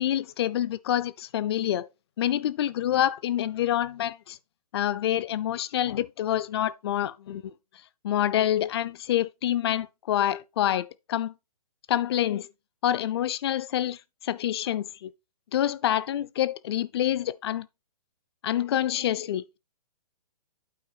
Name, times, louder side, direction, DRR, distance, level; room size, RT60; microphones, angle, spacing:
voice 1, 0.0-1.9 2.2-4.4 4.7-7.5 8.0-11.3 11.9-12.5 12.8-15.1 15.5-17.7 18.4-19.6, left 12 dB, 40° left, 0.5 m, -27 dB
8.4 x 4.6 x 4.4 m
figure-of-eight pair, 125°, 19 cm